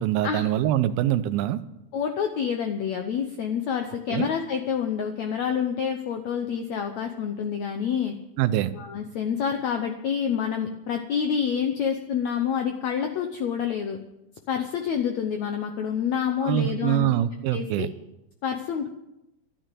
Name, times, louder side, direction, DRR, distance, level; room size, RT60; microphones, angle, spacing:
voice 1, 0.0-1.6 4.1-4.3 8.4-8.7 16.4-17.9, right 12 dB, 80° right, 10 dB, 2.6 m, -24 dB
voice 2, 1.9-8.1 8.7-14.0 14.5-17.1 17.5-17.9 18.4-18.9, left 7 dB, 85° left, 5 dB, 1.5 m, -27 dB
13.0 x 10.0 x 9.1 m, 0.91 s
omnidirectional pair, 4.5 m